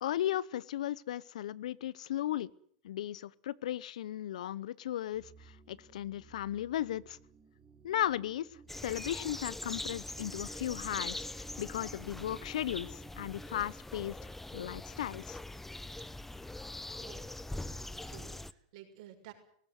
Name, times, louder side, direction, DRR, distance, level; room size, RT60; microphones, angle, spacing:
voice 1, 0.0-2.5 2.8-7.2 7.8-8.5 8.8-14.2 14.5-15.4, left 12 dB, 80° left, 22 dB, 0.8 m, -36 dB
sound 1, 5.1-13.6, right 4 dB, 25° right, 6.0 m, -57 dB
sound 2, 8.7-18.5, left 2 dB, 5° left, 0.9 m, -42 dB
voice 2, 17.0-19.3, right 11 dB, 65° right, 3 dB, 6.3 m, -54 dB
19.0 x 17.0 x 9.4 m, 0.62 s
hypercardioid pair, 105°, 4 cm